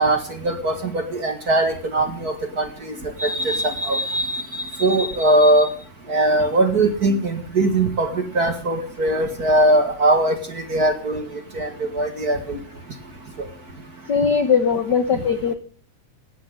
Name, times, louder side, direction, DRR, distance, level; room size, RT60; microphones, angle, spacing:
voice 1, 0.0-5.7 6.1-12.6 13.4-13.5 15.1-15.2, right 1 dB, 35° right, 6 dB, 1.9 m, -21 dB
voice 2, 14.1-15.5, left 6 dB, 60° left, 9 dB, 1.1 m, -19 dB
18.0 x 17.0 x 3.8 m, 0.40 s
omnidirectional pair, 3.7 m